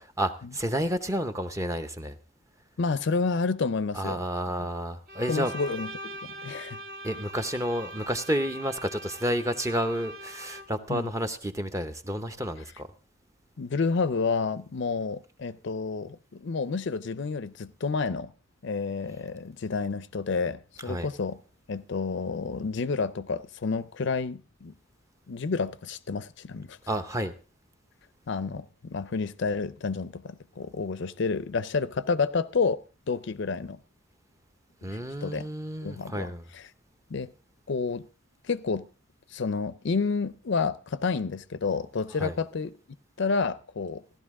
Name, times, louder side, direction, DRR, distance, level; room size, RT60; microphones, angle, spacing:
voice 1, 0.0-2.2 3.9-5.5 7.0-12.9 20.9-21.1 26.9-27.3 34.8-36.4 42.2-42.4, equal, 15° right, 0.7 m, -30 dB
voice 2, 2.8-4.2 5.3-6.8 10.9-11.1 13.6-18.3 18.6-21.4 21.7-24.7 25.3-26.8 28.3-32.8 33.1-33.8 35.2-35.5 35.8-36.6 37.1-37.3 37.7-38.1 38.5-38.9 39.3-42.7 43.2-44.0, left 4 dB, 55° left, 0.5 m, -30 dB
Bowed string instrument, 5.1-10.9, right 1 dB, 45° right, 1.0 m, -42 dB
16.0 x 11.5 x 3.6 m
head